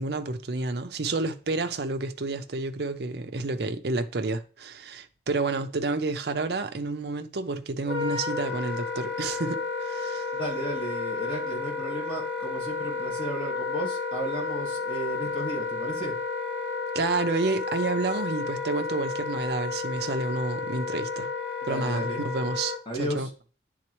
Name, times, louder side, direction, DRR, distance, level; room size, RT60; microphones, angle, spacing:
voice 1, 0.0-10.3 16.9-21.3 21.7-23.3, right 3 dB, 60° right, 0.6 m, -30 dB
Wind instrument woodwind instrument, 7.8-22.8, left 4 dB, 70° left, 0.8 m, -32 dB
voice 2, 10.3-16.1 21.6-22.2 22.9-23.3, right 1 dB, 30° left, 1.7 m, -34 dB
9.8 x 3.9 x 3.0 m
head